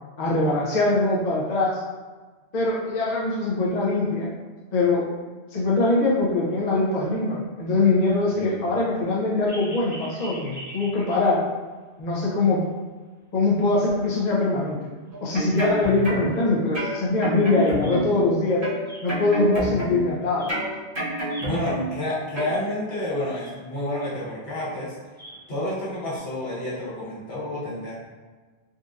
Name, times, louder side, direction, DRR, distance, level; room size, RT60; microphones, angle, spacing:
voice 1, 0.2-1.8 2.5-4.3 4.7-5.1 5.5-11.4 12.0-12.6 13.3-14.8 15.2-18.6 19.0-20.5, left 2 dB, 45° left, -6 dB, 0.7 m, -22 dB
sound 1, 9.5-11.7 12.1-12.2 12.6-12.7 14.0-14.1 14.6-14.7 15.1-15.2 15.4-18.4 18.8-20.0 20.3-20.8 21.1-22.0 22.5-22.6 22.8-22.9 23.2-26.2, right 1 dB, 15° right, 1.1 m, -43 dB
sound 2, 15.1-16.4 16.7-18.3 18.6-20.1 20.5-22.0 22.4-22.5, right 1 dB, 50° right, 1.4 m, -29 dB
voice 2, 21.4-25.0 25.5-27.9, left 1 dB, 65° left, -8 dB, 1.4 m, -30 dB
3.9 x 2.6 x 2.4 m, 1.3 s
omnidirectional pair, 1.1 m